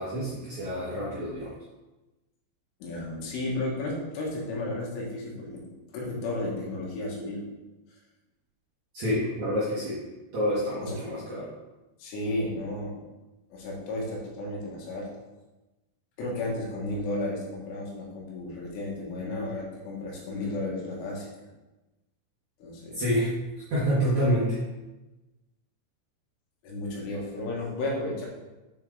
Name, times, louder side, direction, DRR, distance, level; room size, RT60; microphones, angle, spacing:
voice 1, 0.0-1.5 8.9-10.0 10.3-11.5 23.0-23.3 23.7-24.6, equal, 65° right, -8 dB, 1.9 m, -27 dB
voice 2, 2.8-5.6 5.9-7.4 10.8-11.0 12.0-13.0 13.5-15.1 16.2-21.3 22.6-23.0 26.6-28.3, left 2 dB, 85° left, -3 dB, 4.2 m, -33 dB
8.3 x 6.2 x 3.7 m, 1.1 s
omnidirectional pair, 5.6 m